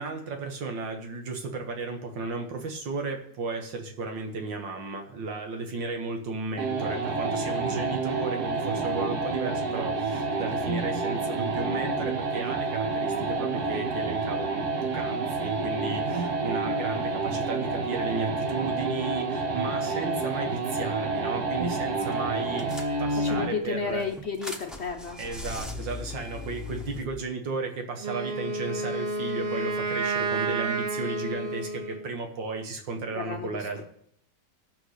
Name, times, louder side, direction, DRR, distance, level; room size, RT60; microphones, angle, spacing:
voice 1, 0.0-14.5 14.8-24.0 25.2-33.8, right 3 dB, 85° right, 4 dB, 2.3 m, -34 dB
sound 1, 6.6-23.6, right 3 dB, 60° right, 1.8 m, -29 dB
sound 2, 21.6-21.9 22.1-22.2 22.6-23.4 23.9-27.0, left 3 dB, ahead, 0.8 m, -39 dB
voice 2, 23.1-25.2 33.1-33.8, left 5 dB, 50° left, 4 dB, 0.8 m, -33 dB
Wind instrument woodwind instrument, 28.0-32.1, right 3 dB, 40° right, 1.0 m, -30 dB
15.0 x 6.2 x 6.5 m, 0.71 s
omnidirectional pair, 1.9 m